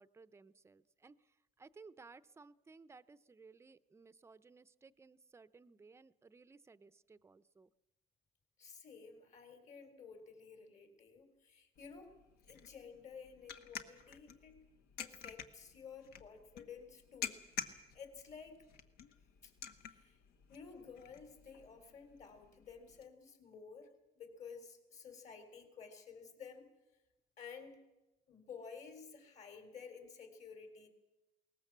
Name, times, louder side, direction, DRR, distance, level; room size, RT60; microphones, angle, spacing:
voice 1, 0.0-7.7, right 4 dB, 15° right, 15 dB, 0.7 m, -59 dB
voice 2, 8.6-12.2 12.4-14.6 15.0-18.6 19.4-19.5 19.8-20.2 20.5-23.9 24.2-26.7 27.4-27.8 28.3-30.9, left 6 dB, 50° left, 7 dB, 3.6 m, -53 dB
sound 1, 11.7-23.0, left 8 dB, 80° left, 1.4 m, -50 dB
21.5 x 19.0 x 7.4 m, 1.0 s
cardioid pair, 110°, 16 cm